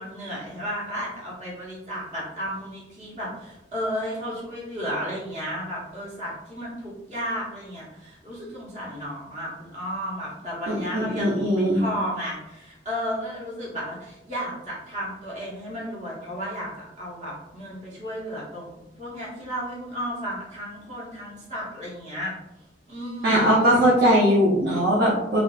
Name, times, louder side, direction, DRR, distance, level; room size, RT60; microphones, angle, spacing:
voice 1, 0.0-22.3 22.9-23.7, equal, 40° right, -5 dB, 1.1 m, -33 dB
voice 2, 10.7-11.8 23.2-25.4, equal, 60° right, -6 dB, 0.6 m, -20 dB
3.3 x 2.6 x 2.3 m, 0.92 s
head